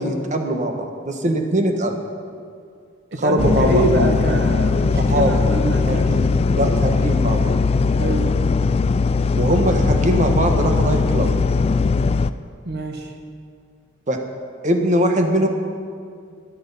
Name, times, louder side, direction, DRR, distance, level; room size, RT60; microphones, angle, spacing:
voice 1, 0.0-2.0 3.2-3.8 5.1-5.3 5.9-6.2 6.5-7.5 9.4-11.3 14.1-14.2 14.6-15.5, right 1 dB, 40° right, 4 dB, 1.2 m, -21 dB
voice 2, 3.1-6.3 8.0-8.3 12.6-13.1, right 1 dB, 55° right, 3 dB, 1.3 m, -24 dB
sound 1, 3.4-12.3, left 4 dB, 30° left, 0.3 m, -19 dB
12.5 x 12.0 x 5.5 m, 2.2 s
head